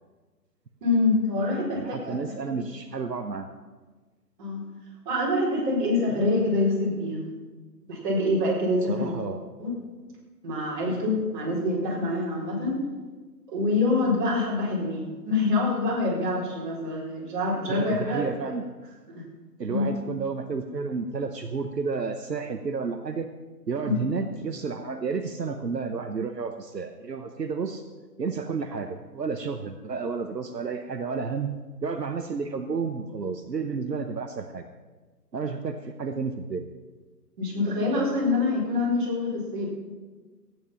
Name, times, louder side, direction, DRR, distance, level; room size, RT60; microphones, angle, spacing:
voice 1, 0.8-2.2 4.4-4.7 5.0-7.2 7.9-9.1 9.6-9.7 10.4-12.8 13.5-18.2 19.1-19.2 19.7-19.8 23.8-23.9 37.4-39.7, left 2 dB, 30° right, -5 dB, 4.5 m, -25 dB
voice 2, 1.8-3.5 8.9-9.4 17.7-18.6 19.6-23.3 23.7-27.8 28.2-34.6 35.3-36.7, right 5 dB, 75° right, 6 dB, 1.1 m, -31 dB
14.5 x 9.2 x 5.7 m, 1.3 s
figure-of-eight pair, 145°, 49 cm